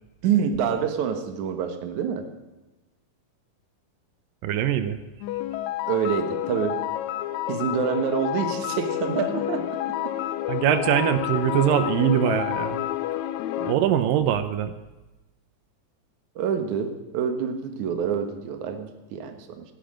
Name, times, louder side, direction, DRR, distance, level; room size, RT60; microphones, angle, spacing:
voice 1, 0.2-2.3 5.8-6.8 7.5-9.8 13.6-14.0 16.4-19.7, right 7 dB, 65° right, 7 dB, 2.6 m, -27 dB
voice 2, 4.4-5.0 10.5-12.8 13.7-14.7, right 10 dB, 85° right, 11 dB, 2.5 m, -22 dB
sound 1, 5.2-13.8, left 13 dB, 85° left, 1.6 m, -29 dB
14.0 x 10.0 x 7.7 m, 1.1 s
omnidirectional pair, 3.9 m